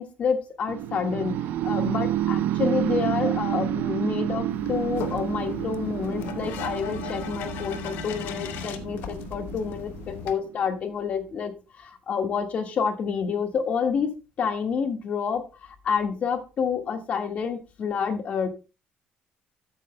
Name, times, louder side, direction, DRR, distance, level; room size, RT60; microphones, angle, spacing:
voice 1, 0.0-1.3 1.6-14.1 14.4-18.5, left 6 dB, 45° left, 6 dB, 1.6 m, -28 dB
sound 1, 0.7-10.6, right 12 dB, 75° right, 0.5 m, -29 dB
sound 2, 4.5-10.3, left 7 dB, 85° left, 1.1 m, -37 dB
13.0 x 9.0 x 2.2 m, 0.30 s
cardioid pair, 145°, 3 cm